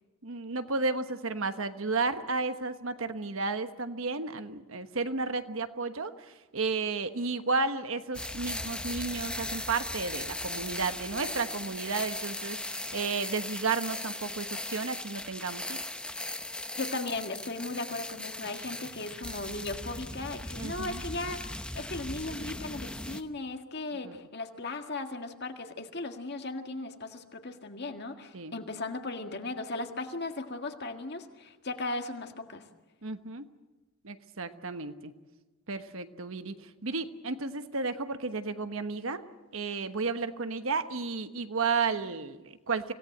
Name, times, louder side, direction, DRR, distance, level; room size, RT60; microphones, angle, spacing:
voice 1, 0.2-6.1 6.5-15.8 20.6-21.0 24.0-24.2 28.3-28.5 33.0-33.4 34.0-35.1 35.7-36.5 36.8-39.2 39.5-42.9, right 4 dB, 65° right, 9 dB, 1.2 m, -32 dB
sound 1, 8.1-23.2, left 1 dB, 5° left, 0.8 m, -38 dB
voice 2, 16.8-32.7, left 2 dB, 50° left, 5 dB, 1.8 m, -37 dB
25.5 x 17.5 x 7.9 m, 1.2 s
head